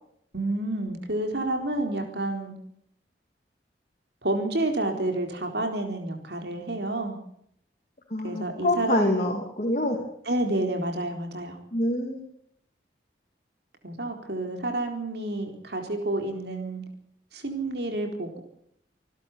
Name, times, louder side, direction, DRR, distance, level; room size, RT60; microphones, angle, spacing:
voice 1, 0.3-2.5 4.2-7.2 8.2-9.3 10.3-11.6 13.8-16.8 17.3-18.4, right 2 dB, 65° right, 4 dB, 4.0 m, -29 dB
voice 2, 8.1-10.0 11.7-12.2, left 1 dB, 40° left, 0 dB, 3.1 m, -26 dB
26.5 x 12.0 x 8.5 m, 0.71 s
head